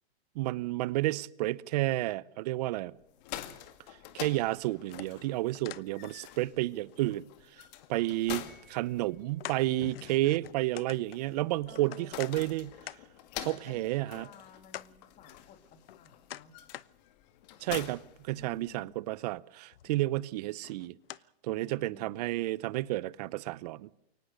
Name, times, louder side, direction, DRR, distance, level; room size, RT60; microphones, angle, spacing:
voice 1, 0.3-2.9 4.1-7.3 7.9-12.7 13.5-14.3 17.6-21.0 21.4-23.9, right 17 dB, 40° right, 0.8 m, -31 dB
sound 1, 3.0-19.0, left 12 dB, 40° left, 2.2 m, -47 dB
sound 2, 4.9-6.5 6.8-8.3 8.7-8.8 9.4-12.3 12.8-13.0 13.5-13.6 14.2-14.3 14.7-14.9 15.5-16.9 17.4-17.9 19.2-19.4 19.7-20.1 20.6-21.2 21.7-21.8 22.5-22.6, left 12 dB, 60° left, 0.9 m, -46 dB
Piano, 8.5-9.6, left 1 dB, 5° left, 3.7 m, -63 dB
voice 2, 11.7-12.3 13.4-16.6 18.3-19.1 21.5-22.3, left 8 dB, 25° left, 2.5 m, -55 dB
23.5 x 19.0 x 6.6 m
hypercardioid pair, 145°, 32 cm